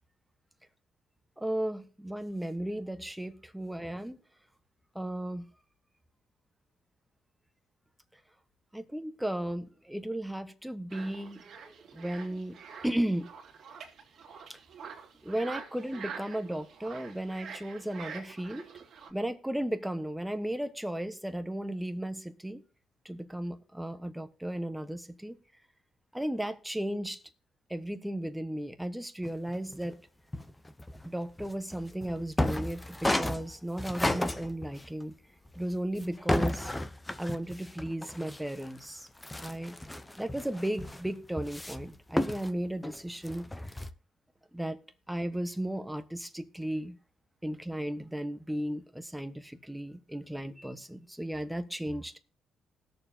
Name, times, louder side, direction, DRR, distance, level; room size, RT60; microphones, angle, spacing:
voice 1, 1.4-4.2 4.9-5.5 8.7-13.3 14.5-14.6 15.2-18.7 19.1-22.6 23.0-25.4 26.1-27.2 27.7-30.0 31.0-35.1 35.5-36.7 37.2-39.1 39.4-39.8 40.2-43.5 44.5-44.8 45.1-47.0 47.4-52.2, right 1 dB, 5° right, 1.2 m, -35 dB
sound 1, 10.9-19.1, right 6 dB, 65° right, 2.4 m, -46 dB
sound 2, 29.2-29.9 30.3-35.0 35.5-38.9 39.2-43.9, left 1 dB, 15° left, 0.8 m, -34 dB
20.0 x 6.9 x 2.8 m
cardioid pair, 90°, 0 cm